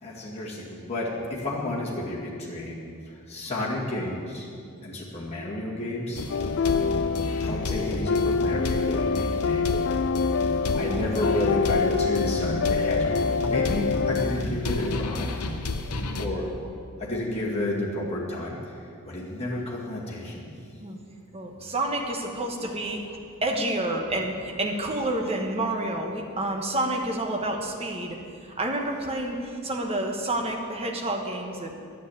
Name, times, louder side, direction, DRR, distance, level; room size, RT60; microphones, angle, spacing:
voice 1, 0.0-4.5 4.8-6.2 7.4-10.5 10.7-15.3 16.2-16.5 17.0-18.6 19.1-20.5, left 1 dB, 30° left, -6 dB, 2.1 m, -31 dB
sound 1, 6.2-16.3, left 2 dB, 85° left, 0.9 m, -31 dB
sound 2, 6.3-14.4, left 5 dB, 55° left, 0.3 m, -26 dB
voice 2, 10.8-11.1 20.8-21.0 21.3-23.0 23.4-28.2 28.4-31.7, right 1 dB, 25° right, 1 dB, 1.2 m, -29 dB
10.0 x 7.4 x 9.4 m, 2.4 s
head